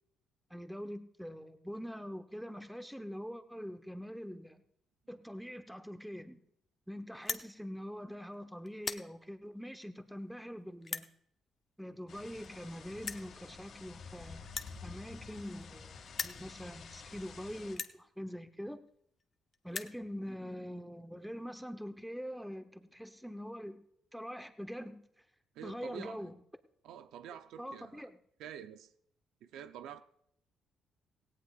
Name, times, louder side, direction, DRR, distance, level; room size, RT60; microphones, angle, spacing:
voice 1, 0.5-4.6 5.1-6.4 6.9-11.1 11.8-14.5 14.8-18.8 19.6-23.8 24.1-25.0 25.6-26.3 27.3-28.2, equal, ahead, 8 dB, 1.0 m, -44 dB
sound 1, 7.1-7.5 8.1-8.3 8.7-9.1 9.8-9.9 10.8-11.1 12.1-12.2 12.4-12.5 13.0-13.3 14.4-15.8 16.1-16.4 17.1-17.2 17.7-18.0 18.9-19.0 19.2-19.3 19.5-20.0, left 4 dB, 35° left, 0.8 m, -39 dB
sound 2, 12.1-17.8, left 5 dB, 60° left, 2.2 m, -50 dB
voice 2, 25.5-26.3 26.8-28.1 28.4-28.9 29.4-30.0, right 9 dB, 85° right, 10 dB, 0.6 m, -47 dB
17.5 x 17.0 x 2.5 m, 0.71 s
cardioid pair, 90°, 0 cm